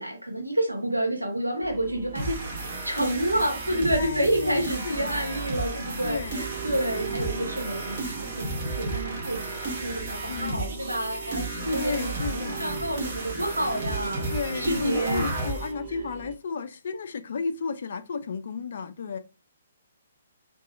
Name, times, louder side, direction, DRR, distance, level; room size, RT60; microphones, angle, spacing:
voice 1, 0.0-2.4 2.8-14.3 14.5-15.3, right 1 dB, 85° right, 0.8 m, -29 dB
sound 1, 1.6-16.4, right 9 dB, 25° right, 0.3 m, -41 dB
sound 2, 2.2-15.7, right 2 dB, 40° right, 0.9 m, -33 dB
voice 2, 3.9-5.2 6.0-6.4 10.3-10.8 11.7-12.7 14.3-19.2, left 5 dB, 50° left, 0.3 m, -33 dB
2.7 x 2.5 x 2.4 m
figure-of-eight pair, 130°, 0 cm